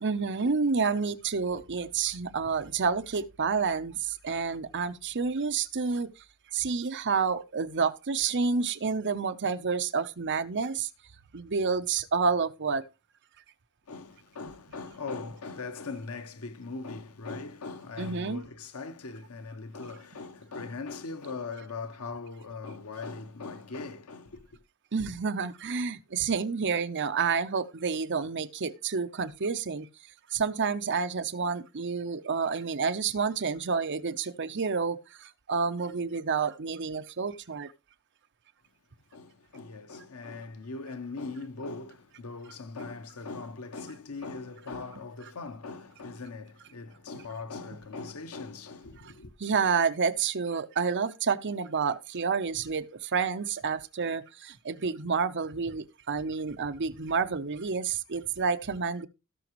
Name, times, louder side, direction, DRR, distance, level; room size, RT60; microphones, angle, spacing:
voice 1, 0.0-6.1 6.5-10.9 11.3-12.8 14.4-14.5 18.0-18.4 24.9-29.9 30.3-37.7 49.4-59.1, right 5 dB, 55° right, 0.8 m, -29 dB
voice 2, 13.9-24.6 39.1-49.3, left 4 dB, 85° left, 1.0 m, -40 dB
17.0 x 6.0 x 3.1 m
head